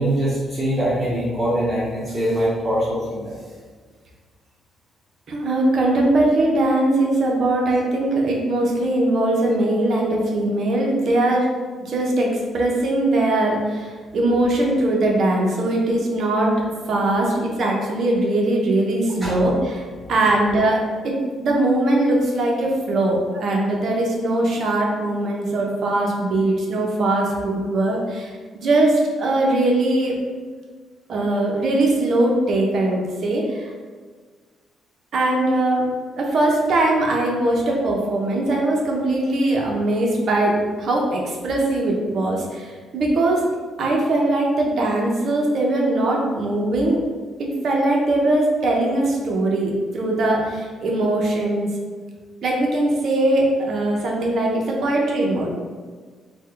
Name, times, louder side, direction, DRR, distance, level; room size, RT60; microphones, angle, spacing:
voice 1, 0.0-3.3 19.2-19.3, right 1 dB, 15° right, -11 dB, 1.2 m, -23 dB
voice 2, 5.3-11.5 11.8-16.5 16.9-30.2 31.1-33.7 35.1-35.9 36.2-43.4 43.8-47.0 47.4-51.7 52.4-55.5, right 1 dB, 60° right, -1 dB, 0.7 m, -21 dB
3.5 x 2.2 x 3.3 m, 1.5 s
cardioid pair, 90°, 0 cm